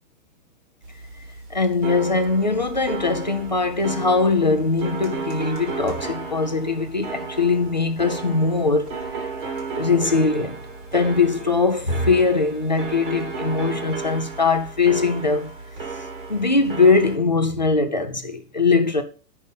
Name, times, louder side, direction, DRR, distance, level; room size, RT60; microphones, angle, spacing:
sound 1, 0.8-17.2, right 4 dB, 30° right, 1.5 m, -34 dB
voice 1, 1.5-9.0 9.7-10.6 10.9-15.5 16.3-19.0, left 4 dB, 30° left, 0.4 m, -21 dB
10.0 x 5.4 x 5.2 m
hypercardioid pair, 180°, 48 cm